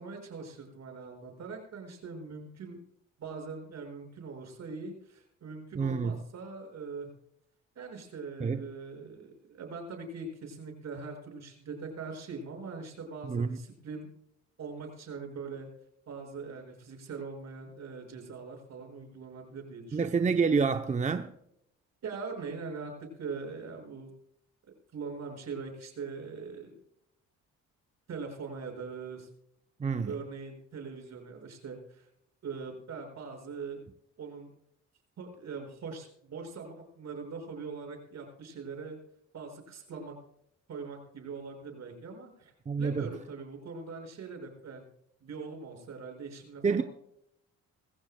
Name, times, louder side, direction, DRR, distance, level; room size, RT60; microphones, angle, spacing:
voice 1, 0.0-2.8 3.2-7.1 7.8-14.1 14.6-15.7 16.1-20.2 22.0-24.1 24.9-26.7 28.1-29.3 30.1-32.1 32.4-33.8 34.2-34.5 35.2-39.0 39.3-40.2 40.7-42.5 42.8-44.9 45.2-46.8, right 4 dB, 60° right, 5.6 m, -42 dB
voice 2, 5.7-6.2 8.4-8.6 13.2-13.6 19.9-21.3 29.8-30.1 42.7-43.1 46.6-46.8, right 5 dB, 25° right, 0.7 m, -28 dB
21.0 x 15.5 x 2.2 m
cardioid pair, 90°, 30 cm